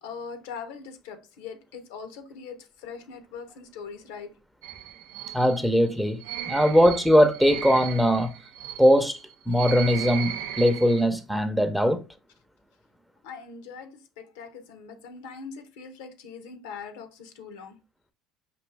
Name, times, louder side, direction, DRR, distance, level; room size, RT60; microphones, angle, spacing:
voice 1, 0.0-4.4 6.5-6.6 13.2-17.8, left 5 dB, 85° left, 0.8 m, -41 dB
sound 1, 4.6-11.1, right 9 dB, 85° right, 0.5 m, -37 dB
voice 2, 5.3-8.3 8.8-9.2 9.5-12.0, equal, ahead, 0.7 m, -21 dB
5.1 x 2.7 x 3.3 m
supercardioid pair, 90°, 0 cm